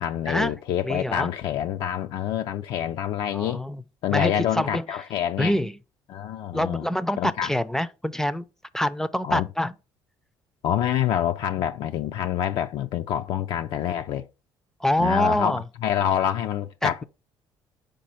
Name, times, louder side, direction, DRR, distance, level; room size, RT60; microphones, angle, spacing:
voice 1, 0.0-3.6 4.0-5.6 6.1-6.8 7.2-7.5 9.2-9.5 10.6-14.3 15.0-17.0, left 10 dB, 70° left, 0.5 m, -26 dB
voice 2, 0.8-1.3 3.3-3.8 4.1-4.9 5.4-5.7 6.5-8.5 8.7-9.7 14.8-15.6 16.8-17.0, left 1 dB, 5° left, 0.5 m, -25 dB
5.2 x 4.2 x 5.6 m
cardioid pair, 100°, 9 cm